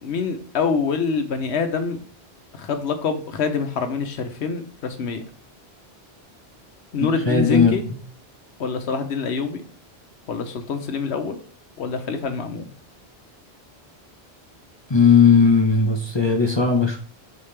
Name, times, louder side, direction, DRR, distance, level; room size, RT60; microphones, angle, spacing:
voice 1, 0.0-2.0 2.5-5.2 6.9-7.8 8.6-9.6 10.3-11.4 11.8-12.7, left 5 dB, 85° left, 7 dB, 1.1 m, -25 dB
voice 2, 7.3-7.8 14.9-17.0, left 5 dB, 30° left, 1 dB, 0.8 m, -16 dB
7.2 x 4.4 x 3.3 m, 0.44 s
omnidirectional pair, 1.1 m